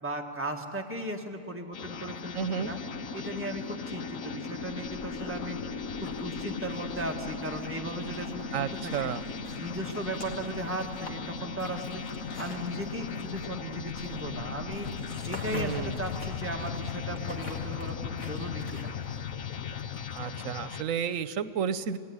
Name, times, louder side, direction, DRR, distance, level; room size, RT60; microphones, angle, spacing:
voice 1, 0.0-2.8 3.1-9.1 9.6-18.9, right 1 dB, 10° right, 1 dB, 1.8 m, -37 dB
sound 1, 1.7-20.8, left 6 dB, 85° left, 1.3 m, -37 dB
voice 2, 2.3-2.7 8.5-9.2 15.5-16.0 20.1-22.0, right 8 dB, 85° right, 14 dB, 1.2 m, -32 dB
sound 2, 4.6-20.2, left 1 dB, 65° left, 2.6 m, -48 dB
27.5 x 18.5 x 9.7 m, 2.6 s
omnidirectional pair, 1.3 m